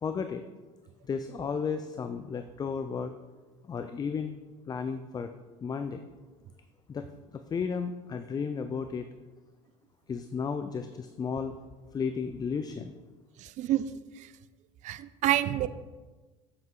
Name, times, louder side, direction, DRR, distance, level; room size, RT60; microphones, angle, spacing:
voice 1, 0.0-0.4 1.0-3.1 3.7-4.4 4.7-5.3 5.6-6.1 6.9-7.1 7.3-9.1 10.1-11.6 11.9-12.9, left 6 dB, 25° left, 9 dB, 0.5 m, -33 dB
voice 2, 13.4-13.8 14.8-15.7, right 14 dB, 50° right, 14 dB, 0.5 m, -27 dB
7.8 x 7.7 x 3.8 m, 1.3 s
supercardioid pair, 95°, 15 cm